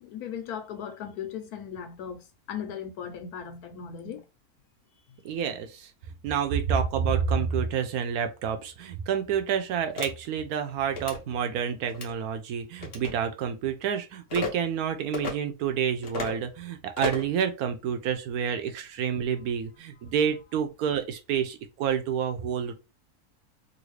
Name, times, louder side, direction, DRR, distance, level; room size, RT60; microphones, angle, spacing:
voice 1, 0.0-4.2, left 8 dB, 80° left, 1.2 m, -37 dB
voice 2, 5.2-5.9 6.2-22.7, right 7 dB, 75° right, 1.1 m, -28 dB
sound 1, 10.0-10.1 10.9-11.2 11.9-12.1 12.8-13.1 14.3-14.5 15.1-15.3 16.0-16.4 17.0-17.3, left 4 dB, 50° left, 0.9 m, -33 dB
3.1 x 2.6 x 3.1 m
omnidirectional pair, 1.6 m